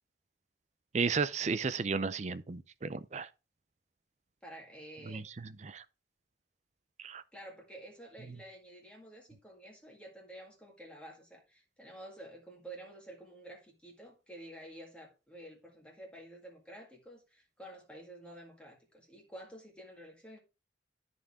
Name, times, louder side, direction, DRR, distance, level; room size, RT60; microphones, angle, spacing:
voice 1, 0.9-3.3 5.1-5.2 5.6-5.8 7.0-7.2, right 5 dB, 35° right, 0.5 m, -33 dB
voice 2, 4.4-5.3 7.3-20.4, right 1 dB, 5° left, 1.9 m, -50 dB
13.0 x 4.4 x 3.5 m
head